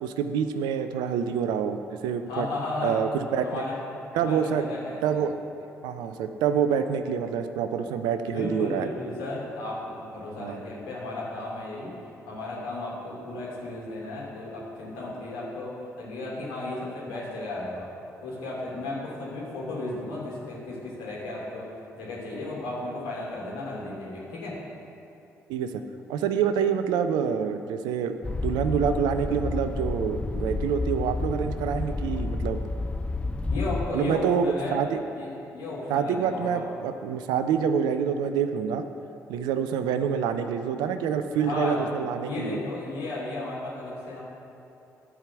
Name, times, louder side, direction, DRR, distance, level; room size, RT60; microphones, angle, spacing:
voice 1, 0.0-2.5 2.8-3.6 4.1-4.6 5.0-5.3 5.8-8.9 10.4-10.6 25.5-25.7 26.1-28.1 28.4-32.6 33.9-35.0 35.9-38.8 39.3-42.7, right 7 dB, 65° right, 9 dB, 0.5 m, -27 dB
voice 2, 2.3-3.0 3.4-3.8 4.1-5.2 8.2-11.9 12.2-17.9 18.2-21.7 22.0-24.6 33.5-34.8 35.2-36.6 41.4-41.9 42.2-44.2, left 2 dB, 65° left, -5 dB, 2.8 m, -34 dB
sound 1, 28.2-33.9, left 3 dB, 15° left, 0.5 m, -30 dB
13.5 x 4.9 x 7.0 m, 2.8 s
figure-of-eight pair, 40°, 8 cm